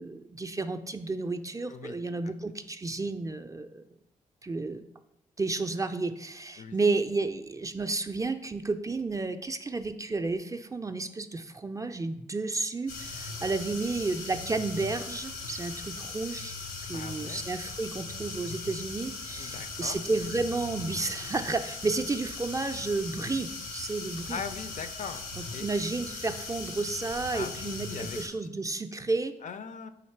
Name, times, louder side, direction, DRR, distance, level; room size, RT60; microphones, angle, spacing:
voice 1, 0.0-3.8 4.4-4.8 5.4-16.5 16.8-24.4 25.4-29.3, right 3 dB, 20° right, 8 dB, 0.3 m, -32 dB
sound 1, 12.9-28.3, left 3 dB, 80° left, 0.8 m, -39 dB
voice 2, 16.9-17.4 19.4-20.0 24.3-25.2 25.5-25.7 27.3-28.2 29.4-29.9, left 6 dB, 55° left, 10 dB, 0.4 m, -40 dB
3.9 x 2.8 x 4.4 m, 0.82 s
supercardioid pair, 50°, 15 cm